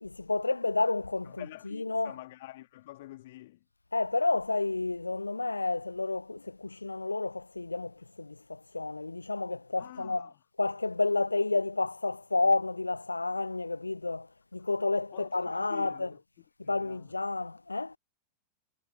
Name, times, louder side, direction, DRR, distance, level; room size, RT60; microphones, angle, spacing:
voice 1, 0.0-2.2 3.9-10.3 10.6-16.1 16.6-18.0, left 3 dB, 80° left, 0.5 m, -30 dB
voice 2, 1.3-3.6 9.8-10.3 15.1-16.2 16.6-17.1, left 16 dB, 55° left, 2.1 m, -47 dB
figure-of-eight pair, 90°, 0 cm